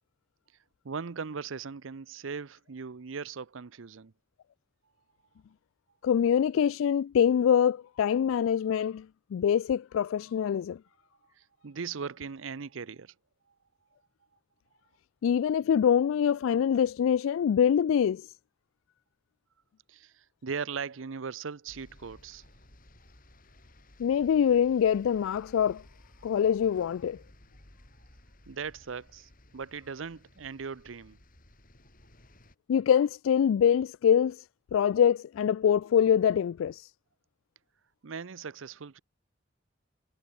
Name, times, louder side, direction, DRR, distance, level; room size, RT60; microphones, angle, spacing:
voice 1, 0.8-4.1 11.4-13.1 19.9-22.4 28.5-31.2 38.0-39.0, right 5 dB, 80° right, 0.7 m, -39 dB
voice 2, 6.0-9.1 9.3-10.8 15.2-18.3 24.0-25.8 26.2-27.2 32.7-34.4 34.7-36.9, left 8 dB, 90° left, 0.3 m, -24 dB
sound 1, 21.7-32.5, left 1 dB, 45° left, 5.0 m, -57 dB
head